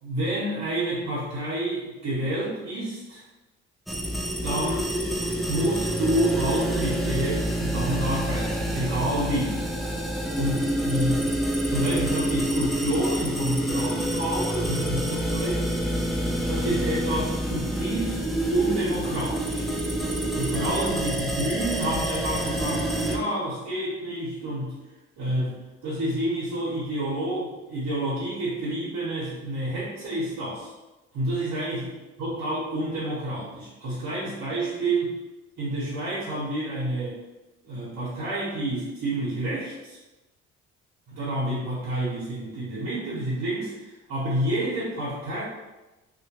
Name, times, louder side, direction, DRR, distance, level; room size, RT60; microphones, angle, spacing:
voice 1, 0.0-3.2 4.4-4.9 5.5-9.6 10.4-11.3 11.7-15.8 16.5-18.2 18.5-19.8 20.4-24.8 25.2-30.7 31.1-31.9 32.2-35.1 35.6-37.2 37.6-40.0 41.1-45.4, right 1 dB, 70° right, -10 dB, 1.0 m, -29 dB
sound 1, 3.9-23.2, right 1 dB, ahead, 0.3 m, -27 dB
2.3 x 2.1 x 2.8 m, 1.1 s
hypercardioid pair, 55°, 33 cm